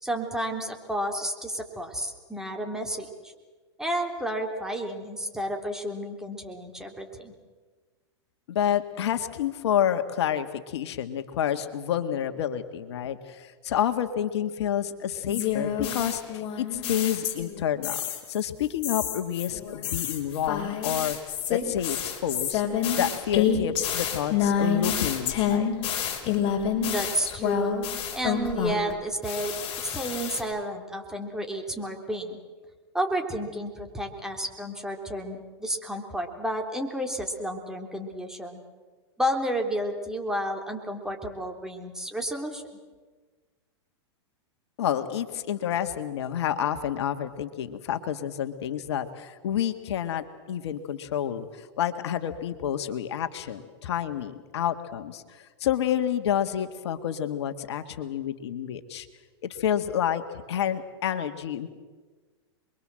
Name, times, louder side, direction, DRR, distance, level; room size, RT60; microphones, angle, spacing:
voice 1, 0.0-3.3 3.8-7.3 26.9-27.8 28.1-32.4 32.9-38.6 39.2-42.6, equal, 5° right, 2 dB, 3.5 m, -31 dB
voice 2, 8.5-18.0 18.3-21.2 21.5-22.6 22.9-25.7 44.8-59.1 59.4-61.7, left 10 dB, 70° left, 8 dB, 1.9 m, -29 dB
sound 1, 15.3-17.6 17.8-18.4 18.8-28.9 29.2-30.4, left 8 dB, 40° left, 5.4 m, -28 dB
28.0 x 22.5 x 7.8 m, 1.4 s
hypercardioid pair, 120°, 14 cm